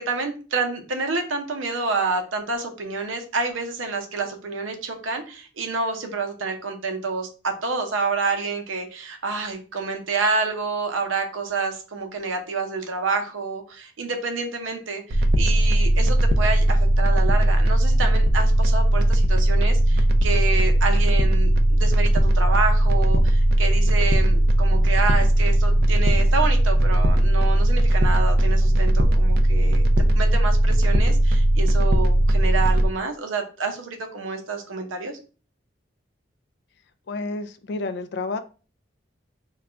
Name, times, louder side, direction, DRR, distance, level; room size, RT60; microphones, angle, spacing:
voice 1, 0.0-29.8 30.1-35.2, right 4 dB, 90° right, 5 dB, 0.7 m, -28 dB
sound 1, 15.1-32.9, right 1 dB, 50° right, 0.3 m, -18 dB
voice 2, 37.1-38.4, left 3 dB, 60° left, 10 dB, 0.3 m, -30 dB
2.3 x 2.2 x 3.7 m, 0.36 s
head